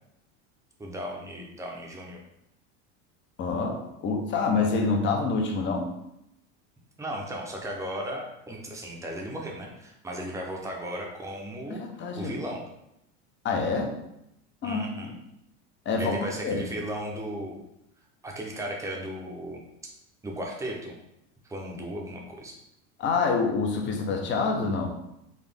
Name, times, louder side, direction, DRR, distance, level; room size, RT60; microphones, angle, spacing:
voice 1, 0.8-2.2 7.0-11.8 12.2-12.6 14.6-15.2 16.0-17.6 18.2-19.6 20.2-21.0 21.5-22.6, equal, 10° right, 0 dB, 0.7 m, -36 dB
voice 2, 3.4-5.9 11.7-12.3 13.4-13.9 14.6-15.1 15.9-16.1 16.4-16.6 23.0-24.9, left 4 dB, 30° left, 3 dB, 0.7 m, -27 dB
4.0 x 2.5 x 3.5 m, 0.82 s
supercardioid pair, 125°, 36 cm